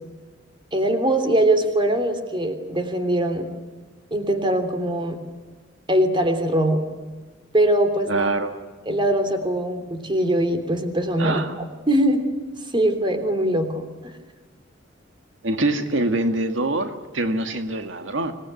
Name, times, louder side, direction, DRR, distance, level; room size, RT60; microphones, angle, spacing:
voice 1, 0.7-3.5 4.1-5.2 5.9-6.8 7.5-8.3 8.9-11.4 11.9-12.2 12.7-14.1, right 1 dB, 25° right, 7 dB, 3.2 m, -22 dB
voice 2, 8.1-8.5 11.2-11.6 15.4-18.3, right 2 dB, 90° right, 6 dB, 2.0 m, -24 dB
26.0 x 19.5 x 9.5 m, 1.4 s
head